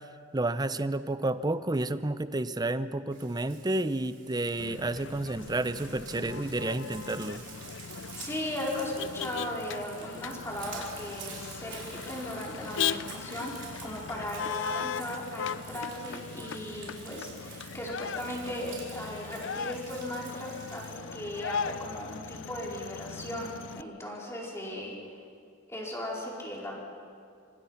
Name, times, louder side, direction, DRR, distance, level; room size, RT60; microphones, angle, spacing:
voice 1, 0.3-7.4, right 2 dB, 20° right, 13 dB, 0.7 m, -30 dB
Frying (food), 3.1-21.0, right 7 dB, 65° right, 4.9 m, -49 dB
Motor vehicle (road), 4.6-23.8, left 7 dB, 70° left, 0.5 m, -38 dB
voice 2, 8.1-25.0 25.7-26.7, left 1 dB, 15° left, -3 dB, 4.7 m, -37 dB
26.0 x 25.5 x 5.8 m, 2.2 s
head